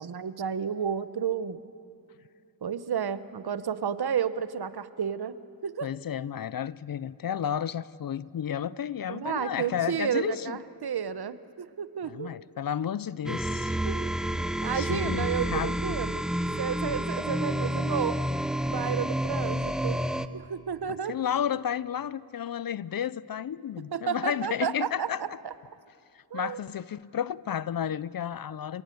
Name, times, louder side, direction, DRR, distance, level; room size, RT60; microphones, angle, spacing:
voice 1, 0.0-1.6 2.6-5.9 9.1-12.3 13.8-16.2 16.6-18.2 18.7-20.0 20.3-21.2 23.9-25.5 26.3-26.6, right 7 dB, 60° right, 0.9 m, -32 dB
voice 2, 5.8-10.6 12.0-13.8 14.7-15.7 20.9-25.4 26.1-28.8, left 9 dB, 55° left, 0.5 m, -32 dB
sound 1, 13.3-20.3, equal, ahead, 0.7 m, -29 dB
29.0 x 17.5 x 7.8 m
wide cardioid pair, 90°, 43 cm